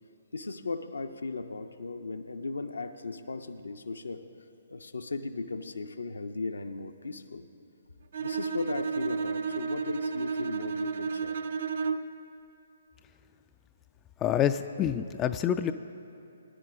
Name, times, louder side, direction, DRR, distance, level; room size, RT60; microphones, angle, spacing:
voice 1, 0.3-4.2 4.7-7.5 8.2-11.4, left 3 dB, 70° left, 7 dB, 0.7 m, -37 dB
Bowed string instrument, 8.1-12.2, right 5 dB, 50° right, 0.5 m, -32 dB
voice 2, 14.2-15.7, left 10 dB, 20° left, 10 dB, 0.3 m, -27 dB
21.0 x 10.5 x 2.5 m, 2.8 s
figure-of-eight pair, 130°, 0 cm